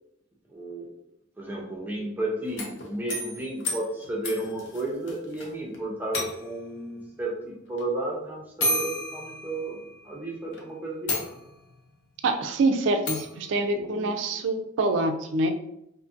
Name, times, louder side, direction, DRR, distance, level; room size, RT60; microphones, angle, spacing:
voice 1, 0.5-0.9 1.4-9.8 10.0-11.3 13.4-14.4, right 2 dB, 10° right, -3 dB, 0.5 m, -33 dB
sound 1, 2.4-5.5 5.7-5.8 6.1-6.7 7.8-7.9 8.6-10.0 10.5-10.6 11.1-11.8 13.1-13.4, left 1 dB, 65° left, 0.5 m, -32 dB
voice 2, 12.2-15.5, right 2 dB, 65° right, 6 dB, 0.3 m, -25 dB
2.6 x 2.5 x 2.4 m, 0.81 s
head